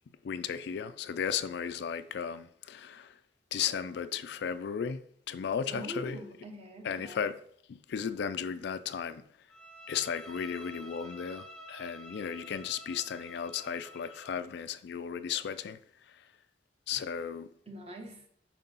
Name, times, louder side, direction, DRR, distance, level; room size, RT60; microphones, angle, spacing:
voice 1, 0.2-3.1 3.5-5.0 5.3-6.2 6.8-7.3 7.7-9.2 9.9-15.8 16.9-17.5, left 7 dB, 65° left, 0.3 m, -35 dB
voice 2, 5.7-7.3 16.9-17.0 17.7-18.3, equal, 35° right, 1.0 m, -43 dB
Bowed string instrument, 9.5-14.4, equal, 5° left, 0.7 m, -50 dB
4.5 x 3.9 x 5.4 m
head